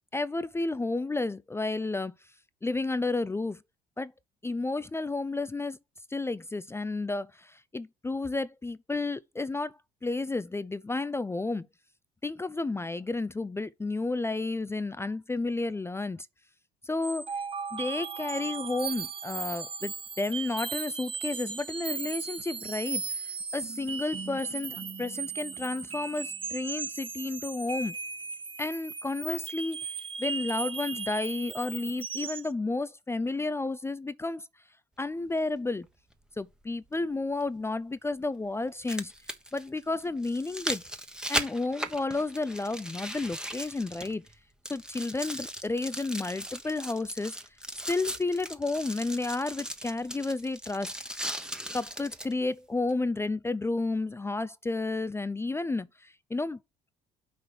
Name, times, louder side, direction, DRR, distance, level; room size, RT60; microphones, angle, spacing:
voice 1, 0.1-2.1 2.6-3.6 4.0-4.1 4.4-5.8 6.1-9.8 10.0-11.7 12.2-16.3 16.8-17.3 17.7-28.0 28.6-29.9 30.2-34.5 35.0-35.9 36.4-39.1 39.5-40.8 41.3-44.3 44.7-47.4 47.9-50.9 51.7-56.6, left 3 dB, 15° left, 0.5 m, -32 dB
sound 1, 17.0-32.5, right 5 dB, 25° right, 0.8 m, -37 dB
sound 2, 35.4-35.5 37.4-37.5 38.6-44.3 44.6-52.3 52.9-53.0, right 1 dB, 5° right, 1.1 m, -38 dB
6.0 x 4.7 x 6.4 m
figure-of-eight pair, 55°, 20 cm